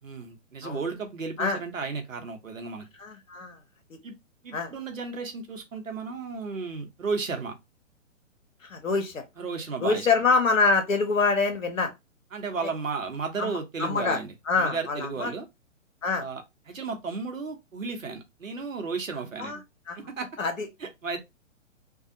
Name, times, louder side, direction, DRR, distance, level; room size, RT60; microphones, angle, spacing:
voice 1, 0.0-2.9 4.0-4.1 4.4-7.6 9.4-10.1 12.3-15.5 16.2-19.5 20.0-20.3 20.8-21.2, right 4 dB, 80° right, 0.9 m, -34 dB
voice 2, 3.0-3.6 3.9-4.0 4.5-4.7 8.7-9.2 9.8-11.9 13.4-14.2 14.5-15.3 16.0-16.2 19.4-19.6 19.9-20.0 20.4-20.7, left 4 dB, 75° left, 1.0 m, -25 dB
2.6 x 2.3 x 2.6 m
figure-of-eight pair, 120°, 39 cm